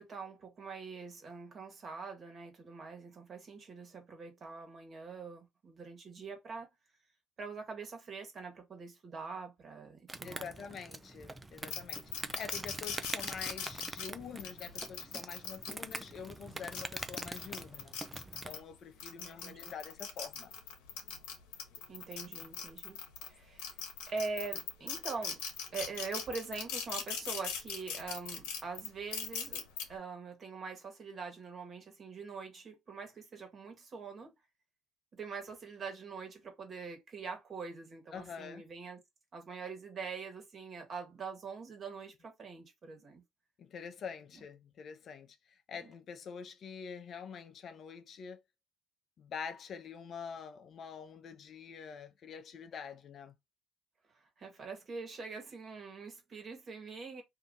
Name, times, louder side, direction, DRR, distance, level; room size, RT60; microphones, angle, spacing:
voice 1, 0.0-6.7 7.4-10.5 19.2-19.7 21.9-23.0 23.2-23.7 24.1-25.4 25.7-29.6 29.9-34.3 35.2-39.0 39.3-43.2 45.8-45.9 54.1-57.2, right 4 dB, 45° right, 1.4 m, -44 dB
Insect, 10.1-18.6, right 2 dB, 15° right, 0.4 m, -44 dB
voice 2, 10.2-18.0 18.4-20.5 38.1-38.7 43.6-48.4 49.2-53.3, left 6 dB, 55° left, 0.6 m, -46 dB
sound 1, 11.7-16.0 16.6-18.6 19.0-23.3 23.6-29.8, left 7 dB, 85° left, 0.9 m, -40 dB
2.7 x 2.5 x 3.6 m
supercardioid pair, 75°, 0 cm